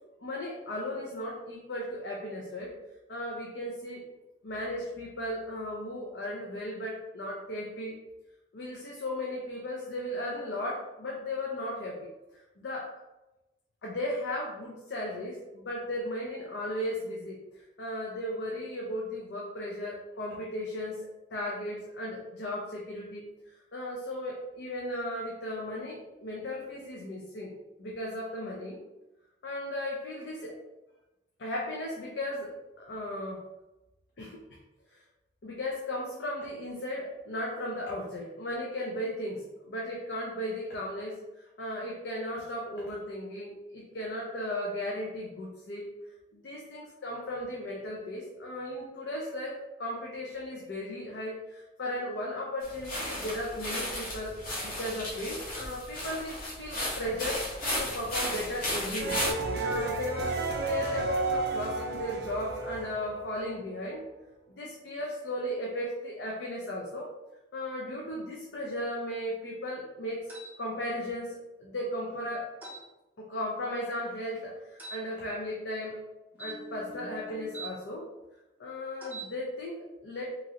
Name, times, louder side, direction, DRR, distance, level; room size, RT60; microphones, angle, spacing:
voice 1, 0.2-2.7 3.1-4.0 4.4-8.0 8.5-12.0 12.3-12.9 13.8-23.3 23.7-27.5 27.8-28.8 29.4-30.6 31.4-33.4 34.2-34.4 34.9-35.0 35.4-45.9 46.3-54.4 54.6-57.4 57.8-59.2 59.6-64.0 64.5-67.1 67.5-72.5 73.2-76.0 76.4-78.1 78.6-80.2, left 1 dB, 70° left, -2 dB, 0.5 m, -36 dB
sound 1, 52.6-59.3, left 1 dB, 50° left, 0.9 m, -34 dB
sound 2, 59.0-63.7, right 3 dB, 60° right, 0.4 m, -32 dB
sound 3, 70.3-70.6 72.6-72.8 74.8-75.0 76.3-77.7 79.0-79.3, right 3 dB, 10° right, 0.6 m, -43 dB
2.9 x 2.4 x 2.8 m, 1.0 s
head